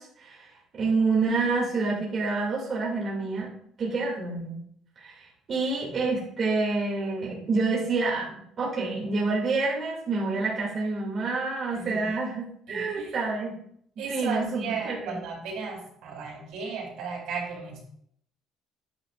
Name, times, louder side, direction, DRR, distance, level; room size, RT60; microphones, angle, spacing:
voice 1, 0.0-3.5 3.8-4.6 5.0-8.3 8.6-13.5 14.1-15.2, right 3 dB, 40° right, -5 dB, 2.8 m, -28 dB
voice 2, 11.7-12.1 12.7-13.1 14.0-17.8, right 5 dB, 75° right, -3 dB, 4.3 m, -35 dB
11.5 x 10.0 x 2.6 m, 0.70 s
cardioid pair, 135°, 0 cm